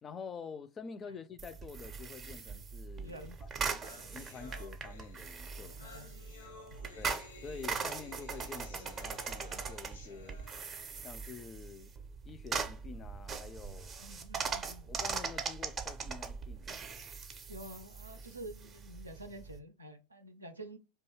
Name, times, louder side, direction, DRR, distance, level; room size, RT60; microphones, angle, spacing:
voice 1, 0.0-3.2 3.6-3.8 4.1-5.9 7.0-10.4 11.0-11.9 12.2-13.9 14.9-16.7, left 5 dB, 25° left, 0.4 m, -48 dB
sound 1, 1.4-19.6, right 5 dB, 30° right, 0.5 m, -41 dB
voice 2, 3.0-3.4 5.6-6.3 6.7-6.8 14.0-14.9 17.5-20.8, right 1 dB, 90° right, 0.4 m, -49 dB
sound 2, 3.2-3.3 3.5-11.1, left 2 dB, 80° left, 0.7 m, -54 dB
2.6 x 2.3 x 3.0 m
figure-of-eight pair, 85°, 0 cm